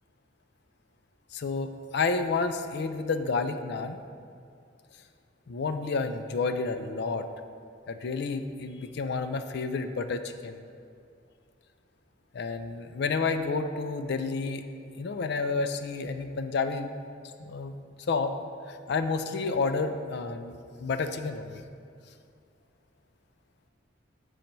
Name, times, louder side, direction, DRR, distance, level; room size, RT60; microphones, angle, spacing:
voice 1, 1.3-4.0 5.5-7.3 7.9-10.6 12.3-14.6 15.0-16.9 17.4-17.8 18.1-18.4 18.7-21.6, left 4 dB, 60° left, 9 dB, 0.4 m, -30 dB
6.3 x 4.5 x 5.3 m, 2.4 s
head